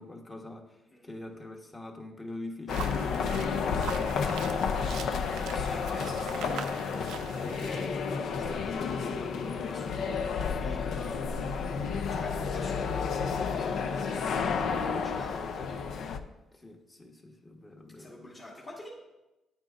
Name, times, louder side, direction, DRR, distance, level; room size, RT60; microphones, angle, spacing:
voice 1, 0.0-3.5 3.8-4.8 11.7-11.9 16.5-18.4, left 2 dB, 25° left, 2 dB, 1.2 m, -44 dB
sound 1, 2.7-16.2, left 5 dB, 70° left, 0.5 m, -31 dB
sound 2, 2.7-7.9, right 9 dB, 85° right, 0.4 m, -43 dB
voice 2, 5.4-11.2 12.1-13.1 13.6-15.7 18.0-18.9, left 1 dB, 40° left, -7 dB, 1.8 m, -46 dB
9.4 x 8.8 x 2.5 m, 0.99 s
cardioid pair, 90°, 0 cm